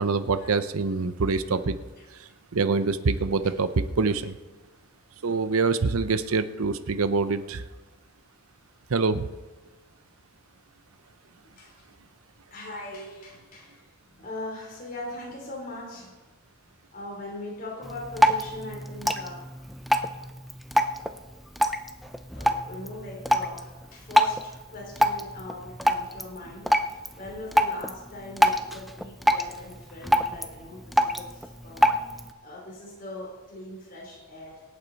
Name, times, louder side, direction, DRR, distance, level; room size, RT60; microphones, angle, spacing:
voice 1, 0.0-1.8 2.2-4.4 5.2-7.6 8.9-9.3, right 4 dB, 70° right, 13 dB, 0.6 m, -25 dB
voice 2, 11.6-11.9 12.5-16.1 16.9-19.5 22.3-31.9 32.4-34.6, left 2 dB, 40° left, -2 dB, 3.5 m, -40 dB
Drip, 17.8-32.3, equal, ahead, 0.4 m, -27 dB
24.5 x 8.7 x 4.1 m, 1.2 s
head